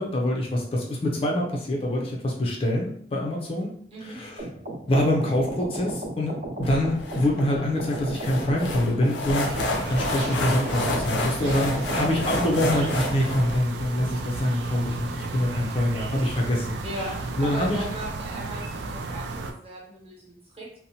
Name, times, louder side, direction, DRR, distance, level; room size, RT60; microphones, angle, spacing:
voice 1, 0.0-3.7 4.0-4.4 4.9-9.5 9.9-17.1 17.4-17.8, left 1 dB, 35° left, -1 dB, 0.4 m, -25 dB
sound 1, 4.4-13.1, right 1 dB, 60° right, 0.7 m, -34 dB
sound 2, 6.6-13.6, left 1 dB, 90° left, 0.5 m, -30 dB
sound 3, 9.4-19.5, right 3 dB, 75° right, 0.3 m, -34 dB
voice 2, 16.8-20.7, right 1 dB, 35° right, -5 dB, 0.9 m, -37 dB
2.7 x 2.0 x 2.7 m, 0.64 s
head